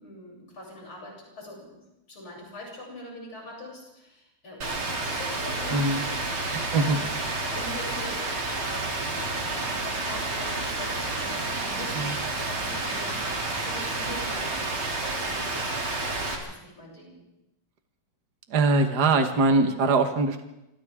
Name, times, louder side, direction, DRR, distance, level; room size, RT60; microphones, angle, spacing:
voice 1, 0.0-1.8 2.1-7.1 7.5-9.0 9.3-17.2, left 1 dB, 65° left, -3 dB, 8.7 m, -43 dB
Rain, 4.6-16.4, right 2 dB, 70° right, 4.0 m, -30 dB
voice 2, 6.5-7.0 12.0-12.2 18.5-20.4, right 3 dB, 50° right, 6 dB, 2.0 m, -22 dB
27.0 x 26.0 x 3.8 m, 0.90 s
omnidirectional pair, 2.4 m